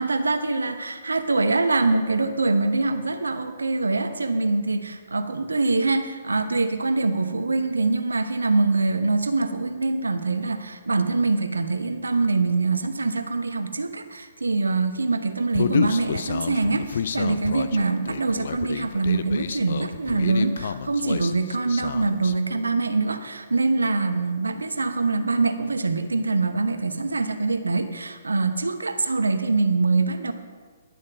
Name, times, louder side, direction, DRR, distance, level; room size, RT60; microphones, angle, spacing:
voice 1, 0.0-30.3, right 3 dB, 80° right, 9 dB, 0.9 m, -24 dB
Human voice, 15.5-22.4, left 7 dB, 60° left, 0.5 m, -29 dB
11.0 x 7.4 x 6.0 m, 1.6 s
figure-of-eight pair, 125°, 0 cm